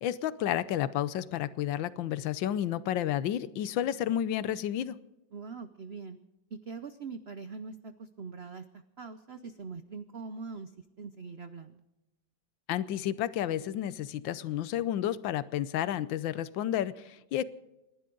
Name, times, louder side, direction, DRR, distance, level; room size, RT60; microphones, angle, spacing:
voice 1, 0.0-5.0 12.7-17.4, left 11 dB, 80° left, 16 dB, 1.4 m, -31 dB
voice 2, 5.3-6.2 6.5-11.8, right 4 dB, 75° right, 10 dB, 0.5 m, -43 dB
29.0 x 11.5 x 3.9 m, 0.97 s
omnidirectional pair, 2.1 m